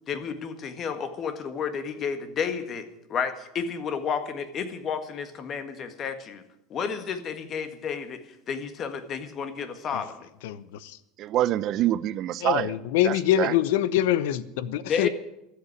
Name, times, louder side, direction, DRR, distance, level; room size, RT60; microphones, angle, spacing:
voice 1, 0.1-2.8 3.1-6.4 6.7-8.2 8.5-10.2 14.9-15.1, left 6 dB, 35° left, 1.6 m, -31 dB
voice 2, 10.4-11.0 12.4-15.1, left 12 dB, 80° left, 0.8 m, -25 dB
voice 3, 11.2-12.8 13.0-13.5, right 13 dB, 45° right, 0.5 m, -26 dB
13.0 x 8.2 x 9.7 m
supercardioid pair, 130°, 0 cm